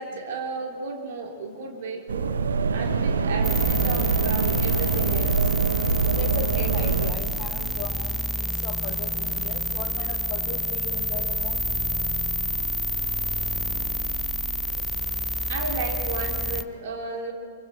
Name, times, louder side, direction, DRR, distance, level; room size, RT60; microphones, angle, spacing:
voice 1, 0.0-2.4 2.7-5.4 15.5-17.3, right 3 dB, 45° right, 1 dB, 3.7 m, -33 dB
sound 1, 2.1-7.1, right 5 dB, 65° right, 1.2 m, -24 dB
sound 2, 3.4-16.6, equal, 5° right, 0.6 m, -28 dB
voice 2, 6.2-8.2 8.6-11.6 15.9-16.0 16.5-16.6, left 6 dB, 30° left, 3 dB, 2.4 m, -37 dB
28.0 x 24.5 x 4.5 m, 2.3 s
figure-of-eight pair, 110°, 0 cm